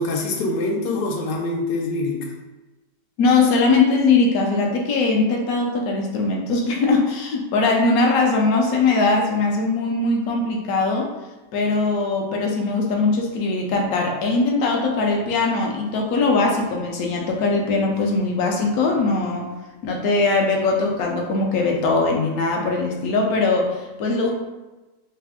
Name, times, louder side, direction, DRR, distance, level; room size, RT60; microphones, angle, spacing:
voice 1, 0.0-2.3, left 2 dB, 90° left, 0 dB, 1.3 m, -24 dB
voice 2, 3.2-11.1 11.5-19.5 19.8-24.3, left 3 dB, 70° left, 1 dB, 0.9 m, -20 dB
3.3 x 2.1 x 3.5 m, 1.1 s
omnidirectional pair, 1.9 m